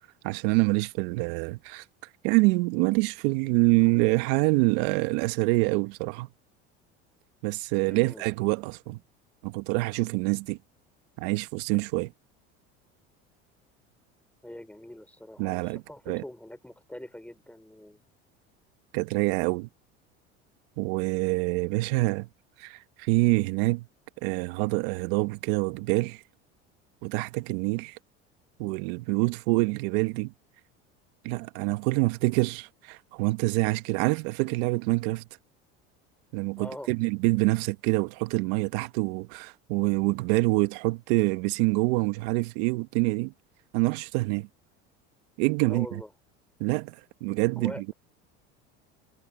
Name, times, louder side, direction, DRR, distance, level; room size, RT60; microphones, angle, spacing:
voice 1, 0.2-1.8 2.2-6.3 7.4-9.0 9.4-10.6 11.2-12.1 15.4-16.2 18.9-19.7 20.8-22.3 22.6-23.9 24.2-26.2 27.0-28.0 28.6-30.3 31.2-35.2 36.3-43.3 43.7-44.5 45.4-46.0 46.6-46.9 47.2-47.9, right 24 dB, 70° right, 1.8 m, -26 dB
voice 2, 7.9-8.3 14.4-18.0 36.6-36.9 45.6-46.1 47.4-47.9, left 1 dB, 5° left, 6.3 m, -43 dB
hypercardioid pair, 85°, 33 cm